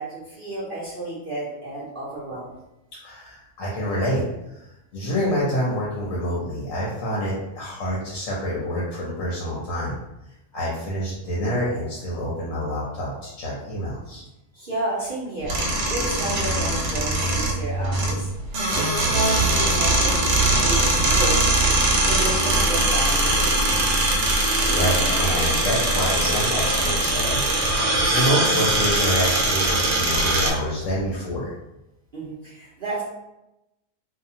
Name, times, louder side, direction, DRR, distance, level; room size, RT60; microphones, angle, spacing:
voice 1, 0.0-2.6 14.5-15.5 15.9-18.3 18.7-21.4 22.0-23.9 32.1-33.0, right 1 dB, 50° right, -9 dB, 0.6 m, -31 dB
voice 2, 3.0-4.2 4.5-10.0 10.5-14.2 24.2-27.5 28.1-31.5, equal, 65° left, -5 dB, 1.0 m, -27 dB
sound 1, 15.4-30.5, right 2 dB, 70° right, 1.1 m, -21 dB
sound 2, 24.6-31.2, left 1 dB, 80° left, 1.2 m, -37 dB
2.7 x 2.2 x 2.7 m, 0.92 s
omnidirectional pair, 1.6 m